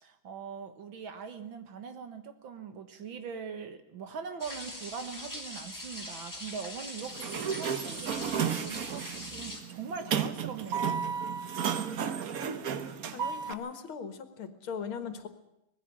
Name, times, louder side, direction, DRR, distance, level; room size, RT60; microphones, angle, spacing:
voice 1, 0.0-11.0, right 6 dB, 75° right, 8 dB, 2.2 m, -41 dB
sound 1, 4.4-9.6, left 1 dB, 10° left, 2.7 m, -42 dB
Sliding door, 7.0-13.5, right 7 dB, 50° right, 1.3 m, -33 dB
voice 2, 13.1-15.3, left 6 dB, 90° left, 9 dB, 2.5 m, -39 dB
19.5 x 15.0 x 8.8 m, 0.86 s
omnidirectional pair, 2.2 m